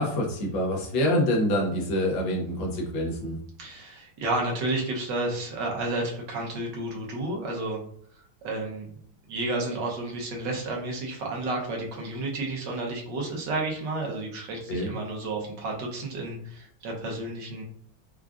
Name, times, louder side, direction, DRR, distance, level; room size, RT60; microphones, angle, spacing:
voice 1, 0.0-3.4 14.7-14.9, left 1 dB, 75° left, 0 dB, 1.6 m, -26 dB
voice 2, 3.6-7.8 8.4-8.9 9.3-17.6, right 2 dB, 65° right, -2 dB, 1.5 m, -31 dB
4.9 x 2.3 x 2.4 m, 0.64 s
omnidirectional pair, 2.2 m